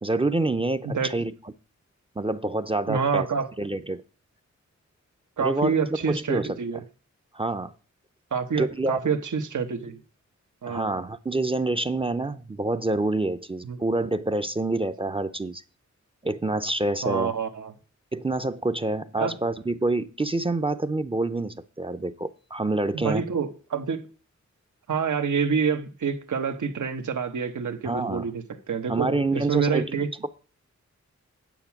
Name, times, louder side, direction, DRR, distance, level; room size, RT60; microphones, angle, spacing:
voice 1, 0.0-1.3 2.2-3.3 3.6-4.0 5.4-5.7 6.1-6.8 7.3-7.7 8.6-9.0 10.7-15.6 16.2-17.3 18.1-23.2 27.8-28.3 28.9-30.0, right 2 dB, 20° right, 0.5 m, -27 dB
voice 2, 2.9-3.5 5.4-6.8 8.3-10.0 10.6-10.9 13.6-13.8 17.0-17.7 19.2-19.4 22.9-24.1 24.9-30.1, right 6 dB, 85° right, 1.2 m, -27 dB
9.1 x 7.3 x 5.8 m
wide cardioid pair, 90°, 29 cm